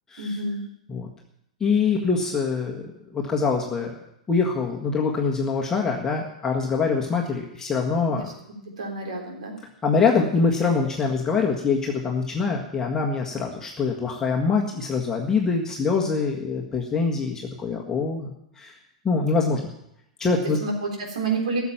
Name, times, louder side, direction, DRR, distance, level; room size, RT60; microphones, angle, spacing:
voice 1, 0.2-0.6 8.1-8.2 8.8-9.5 20.6-21.6, right 3 dB, 60° right, 1 dB, 3.7 m, -28 dB
voice 2, 1.6-3.9 4.3-8.3 9.8-18.3 18.6-18.7 19.0-19.7 20.2-20.6, left 4 dB, 15° left, -1 dB, 1.7 m, -24 dB
14.5 x 7.3 x 9.0 m, 0.78 s
figure-of-eight pair, 100°, 4 cm